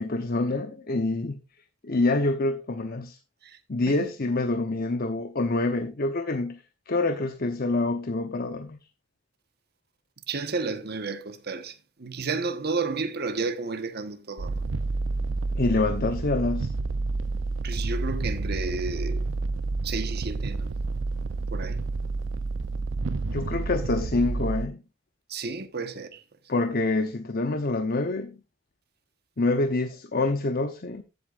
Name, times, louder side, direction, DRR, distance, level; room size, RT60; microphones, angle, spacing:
voice 1, 0.0-1.4 1.8-3.2 3.7-8.8 15.5-16.7 23.3-24.8 26.5-28.4 29.4-31.0, left 2 dB, 50° left, 0.9 m, -26 dB
voice 2, 10.3-14.6 17.6-19.2 19.8-20.7 21.5-21.8 25.3-26.2, right 4 dB, 55° right, 1.2 m, -32 dB
sound 1, 14.4-24.7, right 3 dB, 80° right, 0.5 m, -29 dB
14.5 x 8.1 x 2.5 m
head